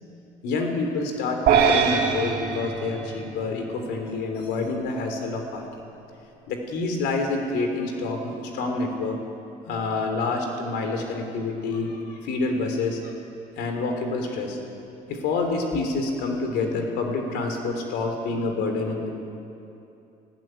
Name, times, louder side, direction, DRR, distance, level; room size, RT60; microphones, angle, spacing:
voice 1, 0.4-5.7 6.5-9.2 9.7-13.1 13.6-14.6 15.1-19.1, left 3 dB, 85° left, 4 dB, 3.4 m, -27 dB
sound 1, 1.5-3.9, right 7 dB, 65° right, 3.0 m, -23 dB
18.5 x 15.5 x 9.1 m, 2.7 s
cardioid pair, 110°, 17 cm